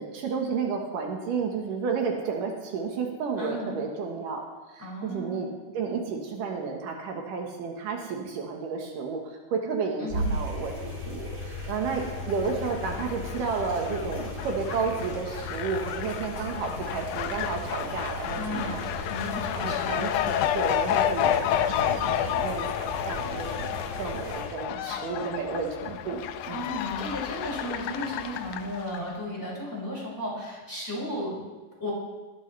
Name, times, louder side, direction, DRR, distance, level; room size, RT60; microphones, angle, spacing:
voice 1, 0.0-5.5 5.7-10.7 11.1-18.8 19.6-26.6, right 5 dB, 80° right, 2 dB, 3.0 m, -32 dB
voice 2, 3.4-3.7 4.8-5.4 10.0-10.3 18.4-18.8 19.1-20.0 26.5-31.4 31.8-31.9, left 1 dB, 5° left, -6 dB, 5.6 m, -34 dB
sound 1, 10.1-24.4, equal, 30° right, 4.7 m, -37 dB
Fowl, 11.8-29.1, left 10 dB, 80° left, 2.1 m, -31 dB
20.5 x 13.0 x 3.3 m, 1.2 s
omnidirectional pair, 3.7 m